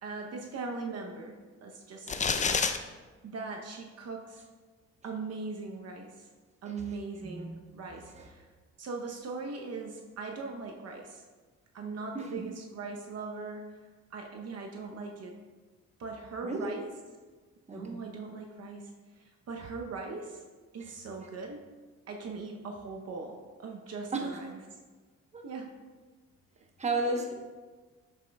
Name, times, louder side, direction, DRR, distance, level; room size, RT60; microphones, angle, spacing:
voice 1, 0.0-2.6 3.2-4.4 5.0-6.3 6.6-8.5 8.8-11.2 11.7-13.8 14.1-15.4 16.0-16.9 17.7-20.4 20.7-21.7 22.1-24.6 25.4-25.7 27.0-27.2, right 4 dB, 55° right, 1 dB, 0.8 m, -40 dB
sound 1, 2.1-2.8, left 5 dB, 25° left, 0.5 m, -27 dB
voice 2, 7.2-7.7 8.1-8.2 12.1-12.4 16.4-16.7 17.7-18.0 24.1-24.4 25.3-25.4 26.8-27.3, right 2 dB, 25° right, 2 dB, 1.0 m, -33 dB
7.4 x 7.3 x 2.3 m, 1.4 s
cardioid pair, 90°, 30 cm